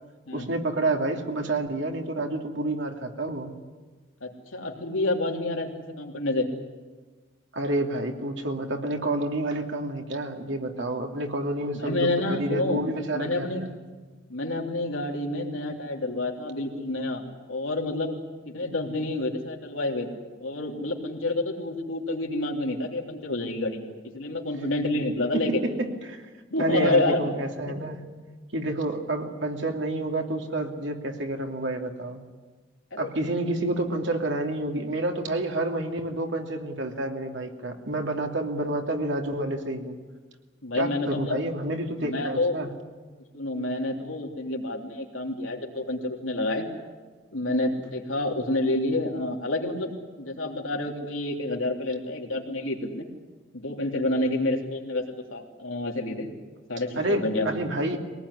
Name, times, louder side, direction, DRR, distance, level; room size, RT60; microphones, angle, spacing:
voice 1, 0.3-3.5 7.5-13.7 25.3-26.2 26.6-28.0 28.5-32.2 33.0-40.0 40.7-42.7 57.0-58.0, right 1 dB, 65° right, 3 dB, 2.8 m, -29 dB
voice 2, 4.2-6.5 11.7-12.8 13.1-13.6 14.3-18.2 18.5-20.1 20.4-23.8 24.1-25.6 26.5-27.3 27.7-27.8 32.9-33.1 40.6-41.4 42.0-42.6 43.3-46.7 47.3-49.9 50.2-53.0 53.5-56.3 56.7-57.5, left 2 dB, 90° left, 1 dB, 3.4 m, -28 dB
23.0 x 19.0 x 9.9 m, 1.4 s
head